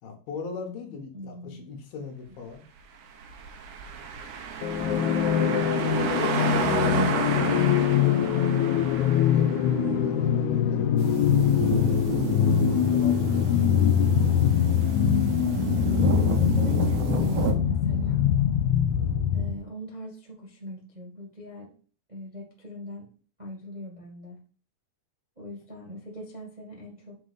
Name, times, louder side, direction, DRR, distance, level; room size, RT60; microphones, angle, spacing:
voice 1, 0.0-2.6 5.5-5.7 6.1-7.7 9.3-10.9 12.9-13.9 18.9-19.5, left 5 dB, 70° left, 2 dB, 3.1 m, -40 dB
voice 2, 1.1-1.6 6.9-8.8 10.2-10.3 13.5-15.3 16.4-18.3 19.3-21.7 22.1-23.1 23.4-24.4 25.3-27.2, equal, 20° right, -2 dB, 1.1 m, -40 dB
sound 1, 3.1-9.9, right 7 dB, 85° right, 3.1 m, -31 dB
sound 2, 4.6-19.6, left 9 dB, 90° left, 1.6 m, -23 dB
sound 3, 11.0-17.5, right 7 dB, 70° right, 1.6 m, -31 dB
7.3 x 4.0 x 6.6 m, 0.41 s
omnidirectional pair, 4.4 m